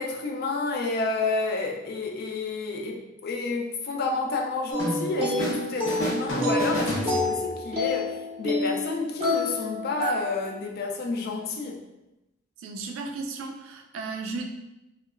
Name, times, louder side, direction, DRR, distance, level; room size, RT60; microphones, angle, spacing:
voice 1, 0.0-11.8, left 3 dB, 50° left, 1 dB, 0.4 m, -30 dB
sound 1, 4.7-10.6, left 2 dB, 30° right, 0.5 m, -29 dB
sound 2, 4.8-5.6 5.9-7.6, equal, 80° left, 1.0 m, -30 dB
voice 2, 12.6-14.5, right 3 dB, 80° right, 3 dB, 0.3 m, -35 dB
2.7 x 2.1 x 2.4 m, 0.96 s
head